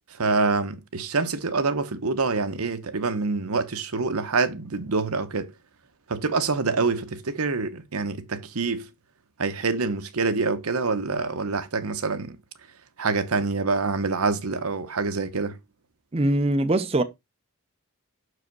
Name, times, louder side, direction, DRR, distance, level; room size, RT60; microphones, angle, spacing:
voice 1, 0.2-5.5 6.1-8.9 9.4-12.4 13.0-15.6, right 4 dB, 75° right, 0.9 m, -26 dB
voice 2, 16.1-17.0, right 1 dB, 25° right, 0.6 m, -22 dB
6.4 x 4.9 x 4.6 m
head